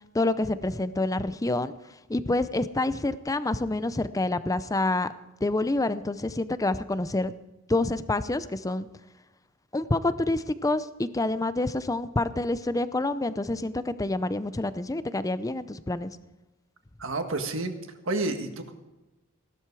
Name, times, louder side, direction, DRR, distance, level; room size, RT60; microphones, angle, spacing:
voice 1, 0.1-1.7 2.1-5.1 5.4-7.3 7.7-8.9 9.7-16.1, left 2 dB, 15° left, 13 dB, 0.6 m, -27 dB
voice 2, 17.0-17.8 18.0-18.7, right 2 dB, 65° right, 6 dB, 1.7 m, -29 dB
17.0 x 12.5 x 4.8 m, 1.0 s
head